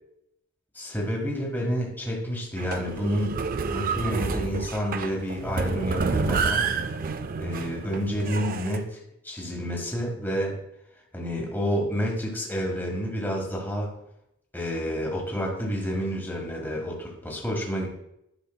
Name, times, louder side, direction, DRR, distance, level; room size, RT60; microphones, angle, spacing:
voice 1, 0.7-3.4 3.7-6.8 7.4-10.6 11.1-13.9 14.5-17.9, equal, 10° left, -1 dB, 1.5 m, -29 dB
sound 1, 2.6-8.8, right 5 dB, 40° right, 0.4 m, -29 dB
11.0 x 5.6 x 2.2 m, 0.80 s
head